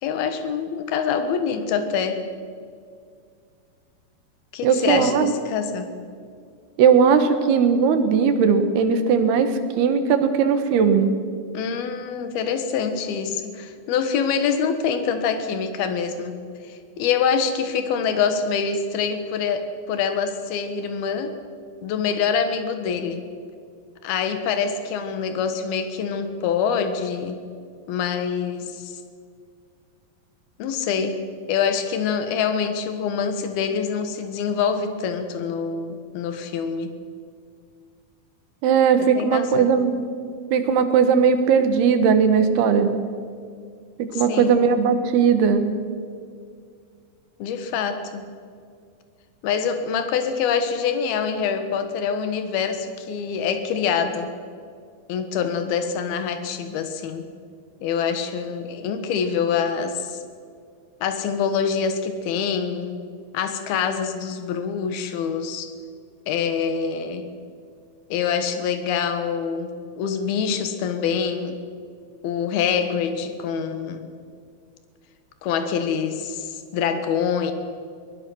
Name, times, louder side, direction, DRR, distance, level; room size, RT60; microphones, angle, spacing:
voice 1, 0.0-2.2 4.5-5.9 11.5-16.3 16.7-21.4 21.8-23.2 24.0-27.4 27.9-29.0 30.6-31.1 31.5-36.9 39.0-39.7 44.1-44.5 47.4-48.2 49.4-54.3 55.1-57.2 57.8-60.2 61.0-63.0 63.3-65.7 66.3-67.2 68.1-69.7 70.0-71.6 72.2-74.1 75.4-77.5, left 6 dB, 75° left, 8 dB, 3.3 m, -25 dB
voice 2, 4.6-5.3 6.8-11.1 38.6-40.0 40.5-42.9 44.0-45.7, right 6 dB, 80° right, 8 dB, 3.5 m, -18 dB
23.5 x 19.5 x 6.4 m, 2.2 s
omnidirectional pair, 4.5 m